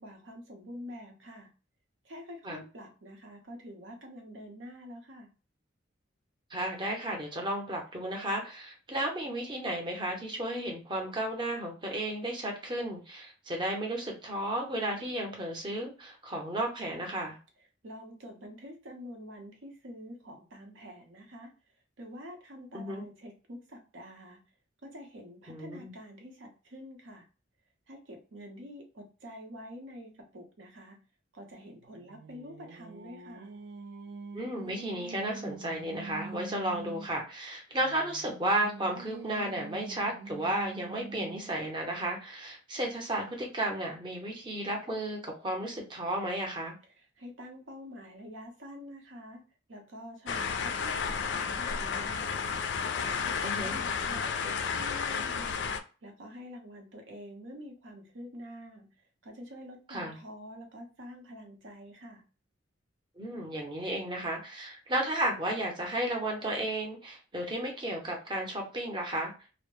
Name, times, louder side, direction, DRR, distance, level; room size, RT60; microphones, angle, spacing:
voice 1, 0.0-1.5 2.0-5.3 17.8-21.5 22.0-24.4 24.8-27.2 27.9-31.0 31.3-33.5 46.9-49.4 49.7-51.0 51.3-52.4 52.9-55.6 56.0-58.9 59.2-62.2, equal, 80° right, 2 dB, 0.8 m, -47 dB
voice 2, 6.5-17.4 22.7-23.0 25.5-25.9 34.3-46.7 53.4-53.8 59.9-60.1 63.2-69.3, right 1 dB, 25° right, 0 dB, 0.6 m, -33 dB
Singing, 31.7-37.2 37.8-41.7, right 4 dB, 55° right, 0.3 m, -45 dB
sound 1, 50.3-55.8, left 6 dB, 65° left, 0.3 m, -32 dB
2.1 x 2.0 x 3.0 m, 0.34 s
head